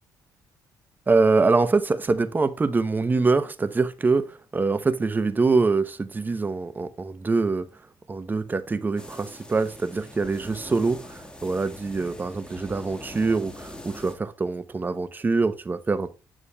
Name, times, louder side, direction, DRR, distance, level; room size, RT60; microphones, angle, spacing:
voice 1, 1.1-7.7 8.1-16.1, right 3 dB, 25° right, 13 dB, 0.7 m, -24 dB
sound 1, 9.0-14.2, left 1 dB, 10° left, 1.6 m, -43 dB
9.9 x 6.3 x 2.2 m, 0.32 s
cardioid pair, 90°, 8 cm